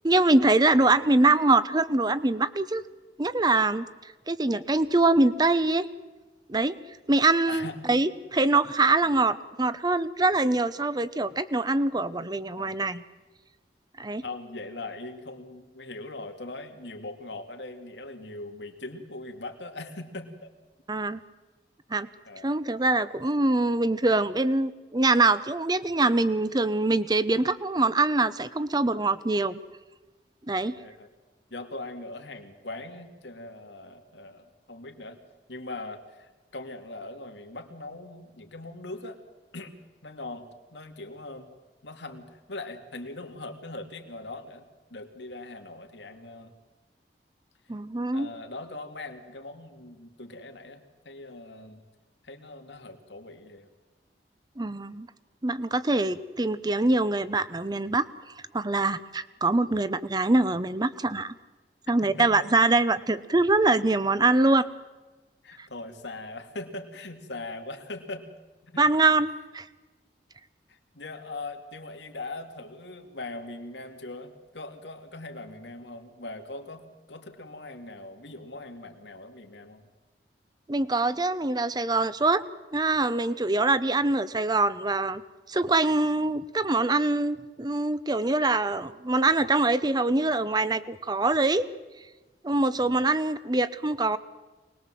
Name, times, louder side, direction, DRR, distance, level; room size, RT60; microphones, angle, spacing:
voice 1, 0.0-2.8 3.2-3.9 4.3-5.9 6.5-6.8 7.1-13.0 14.0-14.2 20.9-21.2 21.9-22.1 22.4-29.6 30.5-30.8 47.7-48.3 54.6-55.1 55.4-58.1 58.5-61.3 61.9-64.7 68.8-69.7 80.7-82.4 82.7-85.2 85.5-91.6 92.4-94.2, right 2 dB, 25° right, 15 dB, 0.8 m, -24 dB
voice 2, 7.5-7.8 9.0-9.2 12.6-12.8 14.2-20.5 22.2-22.5 30.5-31.1 31.5-35.2 35.5-39.2 39.5-39.7 40.0-41.5 41.8-44.6 44.9-46.5 48.1-51.8 52.2-53.7 62.0-62.5 65.4-68.3 68.6-68.8 70.7-79.9 92.7-93.0, left 2 dB, 85° left, 5 dB, 2.4 m, -41 dB
24.5 x 20.5 x 7.6 m, 1.2 s
head